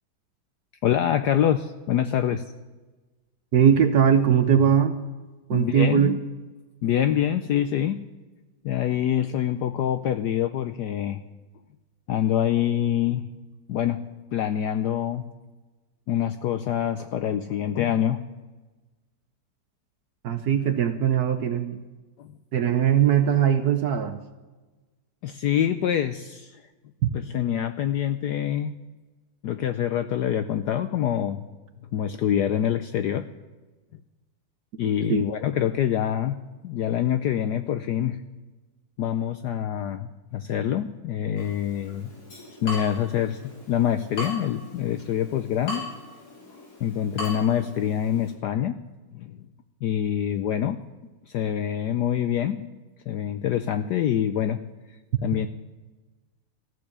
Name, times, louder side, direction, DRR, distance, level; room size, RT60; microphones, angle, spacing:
voice 1, 0.8-2.4 5.5-6.2 6.8-8.0 8.6-11.2 12.1-13.2 13.7-14.0 14.3-15.2 16.1-18.2 22.2-22.3 25.2-26.6 27.3-28.7 29.4-31.5 31.9-33.3 34.8-36.4 36.6-38.2 39.0-42.1 42.6-43.4 43.7-45.9 46.8-48.8 49.1-49.3 49.8-50.8 51.3-52.6 53.1-54.6 55.2-55.5, left 10 dB, 75° left, 10 dB, 0.9 m, -25 dB
voice 2, 3.5-5.0 5.5-6.2 20.2-21.8 22.5-24.2 27.0-27.1 35.1-35.2, right 8 dB, 65° right, 9 dB, 1.0 m, -20 dB
Water tap faucet / Drip, 41.4-48.3, left 1 dB, 50° left, 3.9 m, -39 dB
15.0 x 6.8 x 9.9 m, 1.2 s
omnidirectional pair, 2.3 m